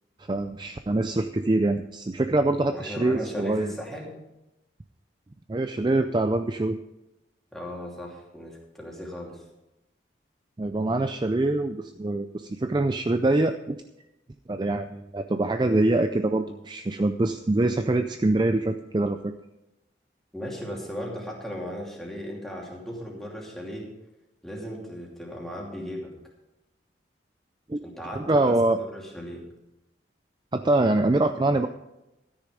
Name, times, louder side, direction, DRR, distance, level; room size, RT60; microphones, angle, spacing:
voice 1, 0.3-3.7 5.5-6.8 10.6-13.8 14.5-19.3 27.7-27.8 28.2-28.8 30.5-31.7, right 2 dB, 25° right, 8 dB, 0.4 m, -24 dB
voice 2, 2.7-4.1 7.5-9.4 20.3-23.9 24.4-26.1 27.8-29.4, equal, ahead, -3 dB, 2.8 m, -37 dB
13.5 x 9.9 x 5.1 m, 0.94 s
head